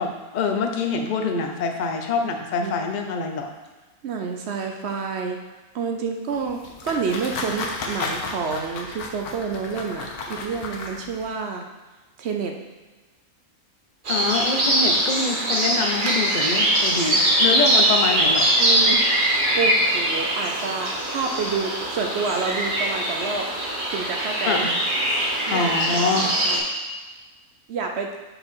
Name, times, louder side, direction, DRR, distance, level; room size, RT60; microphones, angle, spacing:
voice 1, 0.0-3.5 14.1-18.5 24.5-24.7 25.5-26.3, left 4 dB, 50° left, 4 dB, 0.6 m, -25 dB
voice 2, 4.0-5.4 5.7-11.6 12.2-12.5 18.6-19.1 19.6-23.5 23.9-24.7 25.5-26.6 27.7-28.1, right 5 dB, 60° right, 3 dB, 0.8 m, -29 dB
sound 1, 6.3-11.3, left 3 dB, 85° left, 1.4 m, -33 dB
sound 2, 14.1-26.6, right 1 dB, 35° right, 1.2 m, -22 dB
5.5 x 4.7 x 5.5 m, 1.3 s
omnidirectional pair, 1.6 m